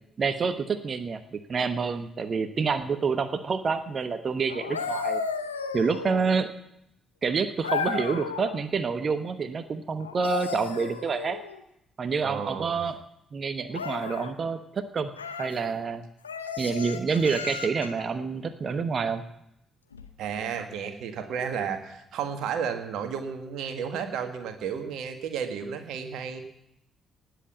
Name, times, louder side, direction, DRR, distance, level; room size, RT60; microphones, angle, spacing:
voice 1, 0.2-5.2 5.7-6.5 7.2-11.4 12.0-13.0 13.3-15.1 15.4-16.0 16.6-19.2, right 5 dB, 45° right, 11 dB, 1.1 m, -28 dB
sound 1, 4.5-6.5 7.6-8.6 10.0-11.6 13.7-14.3 15.1-15.6 16.2-18.0 19.9-20.1, left 5 dB, 85° left, 0.8 m, -34 dB
voice 2, 12.2-12.8 20.2-26.4, right 7 dB, 60° right, 6 dB, 1.6 m, -32 dB
18.5 x 8.0 x 8.3 m, 0.81 s
figure-of-eight pair, 40°, 0 cm